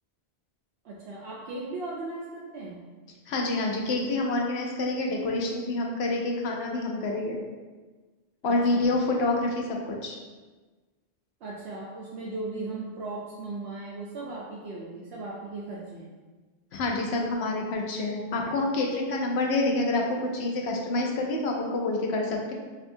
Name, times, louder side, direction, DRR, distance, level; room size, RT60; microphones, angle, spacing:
voice 1, 0.8-2.9 8.4-9.1 11.4-16.1, right 2 dB, 80° right, -6 dB, 0.9 m, -37 dB
voice 2, 3.3-7.4 8.4-10.2 16.7-22.5, left 2 dB, 75° left, 0 dB, 0.9 m, -27 dB
5.2 x 2.4 x 2.6 m, 1.3 s
omnidirectional pair, 1.1 m